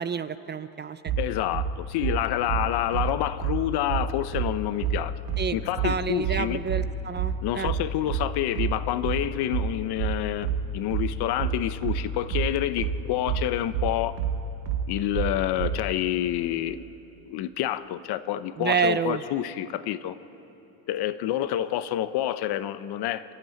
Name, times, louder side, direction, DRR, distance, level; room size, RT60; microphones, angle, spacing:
voice 1, 0.0-1.1 5.4-5.6 5.8-7.7 18.6-19.2, right 6 dB, 25° right, 13 dB, 0.5 m, -28 dB
sound 1, 1.1-15.8, right 8 dB, 75° right, 2.0 m, -28 dB
voice 2, 1.2-5.1 5.5-6.6 7.4-14.2 14.9-16.8 17.3-20.2 20.9-23.2, left 12 dB, 60° left, 12 dB, 1.0 m, -28 dB
29.0 x 12.0 x 9.1 m, 3.0 s
cardioid pair, 115°, 43 cm